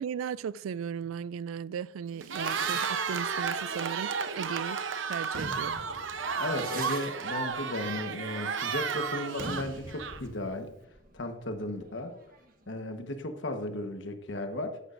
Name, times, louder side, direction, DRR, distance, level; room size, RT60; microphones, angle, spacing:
voice 1, 0.0-4.8 5.1-5.8 6.2-6.4, right 7 dB, 80° right, 0.3 m, -37 dB
sound 1, 2.2-4.7 5.1-12.6, right 3 dB, 45° right, 1.3 m, -45 dB
Cheering, 2.2-10.4, right 6 dB, 65° right, 0.8 m, -33 dB
voice 2, 6.4-10.7 11.1-12.1 12.7-14.8, left 1 dB, 60° left, 1.3 m, -35 dB
15.0 x 11.0 x 2.6 m
head